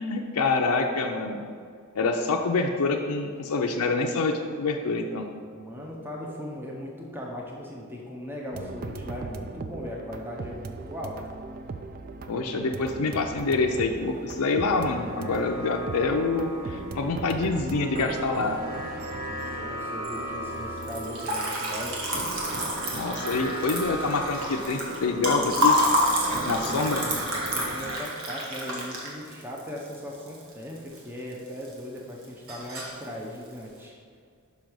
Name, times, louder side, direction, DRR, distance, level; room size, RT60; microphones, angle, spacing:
voice 1, 0.0-1.4 1.9-5.3 12.3-18.6 22.9-25.8 26.4-27.1, left 3 dB, 80° left, 2 dB, 0.5 m, -26 dB
voice 2, 5.5-11.2 19.2-22.1 26.3-26.7 27.3-33.9, equal, 10° right, -1 dB, 0.7 m, -38 dB
sound 1, 8.5-28.0, right 4 dB, 40° right, 0.4 m, -39 dB
sound 2, 13.3-27.8, equal, 85° right, 1.6 m, -39 dB
Liquid, 20.8-31.0 31.3-32.0 32.2-33.0, left 1 dB, 65° right, 1.5 m, -28 dB
5.5 x 5.2 x 6.1 m, 2.1 s
head